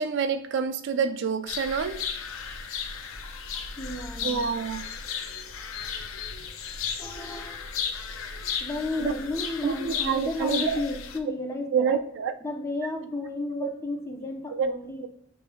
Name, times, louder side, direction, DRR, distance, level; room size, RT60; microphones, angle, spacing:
voice 1, 0.0-2.0 4.2-4.9 9.0-9.1 9.6-10.9 11.7-12.3 13.6-13.7 14.6-14.8 15.0-15.1, right 6 dB, 60° right, 9 dB, 0.3 m, -27 dB
sound 1, 1.5-11.2, left 6 dB, 80° left, 0.5 m, -35 dB
voice 2, 3.8-4.5 7.0-7.6 8.6-12.0 12.4-15.1, left 2 dB, 15° left, 2 dB, 0.6 m, -33 dB
6.9 x 3.3 x 2.2 m, 0.72 s
head